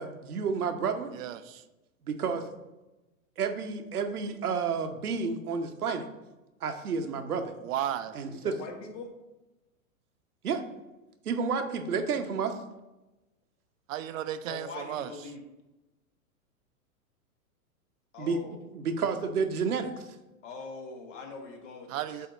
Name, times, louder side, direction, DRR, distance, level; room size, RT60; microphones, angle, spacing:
voice 1, 0.0-1.1 2.1-2.4 3.4-6.0 6.6-7.5 8.1-8.5 10.4-10.6 11.2-12.5 18.2-18.4 18.7-19.9, right 5 dB, 90° right, 0.9 m, -30 dB
voice 2, 1.1-1.6 7.6-8.2 13.9-15.1 21.9-22.3, right 11 dB, 65° right, 0.6 m, -34 dB
voice 3, 8.3-9.1 14.5-15.4 18.1-18.7 20.4-22.2, left 4 dB, 55° left, 1.6 m, -42 dB
8.2 x 2.8 x 4.9 m
hypercardioid pair, 120°, 43 cm